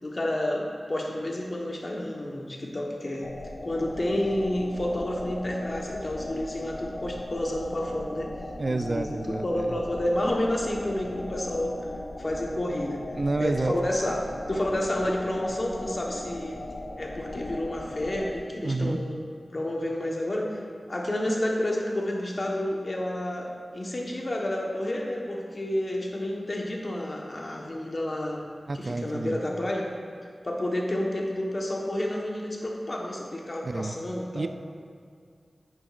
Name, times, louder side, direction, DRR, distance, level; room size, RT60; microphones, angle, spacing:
voice 1, 0.0-3.3 3.6-8.3 8.7-11.9 12.2-13.0 13.4-16.6 17.0-19.2 19.5-20.6 20.9-28.4 28.7-29.9 30.4-34.5, left 1 dB, 45° left, -1 dB, 1.2 m, -30 dB
sound 1, 3.2-18.4, left 2 dB, 75° left, 0.9 m, -39 dB
voice 2, 8.6-9.7 13.2-13.7 18.6-19.0 28.7-29.4 33.6-33.9 34.3-34.5, right 2 dB, 50° right, 9 dB, 0.3 m, -29 dB
10.5 x 8.7 x 2.5 m, 2.1 s
wide cardioid pair, 95°, 0 cm